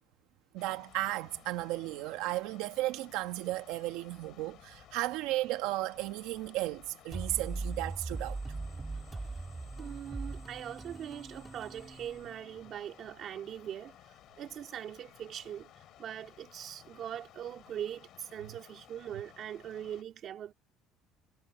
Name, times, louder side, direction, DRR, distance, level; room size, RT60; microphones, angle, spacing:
voice 1, 0.5-8.4, right 17 dB, 85° right, 1.4 m, -34 dB
sound 1, 0.6-20.0, left 13 dB, 50° left, 7.9 m, -57 dB
sound 2, 7.1-12.8, right 3 dB, 15° right, 1.9 m, -40 dB
voice 2, 9.8-20.5, right 10 dB, 40° right, 2.8 m, -42 dB
cardioid pair, 170°, 0 cm